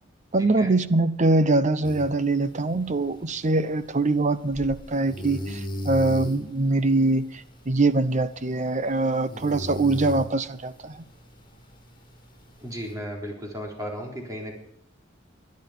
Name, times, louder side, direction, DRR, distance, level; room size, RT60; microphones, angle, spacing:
voice 1, 0.3-7.3 7.7-11.0, right 2 dB, 40° right, 0.8 m, -23 dB
sound 1, 1.8-12.9, equal, 25° left, 5.6 m, -39 dB
voice 2, 12.6-14.5, equal, 20° right, 3.9 m, -34 dB
20.0 x 12.0 x 5.1 m
head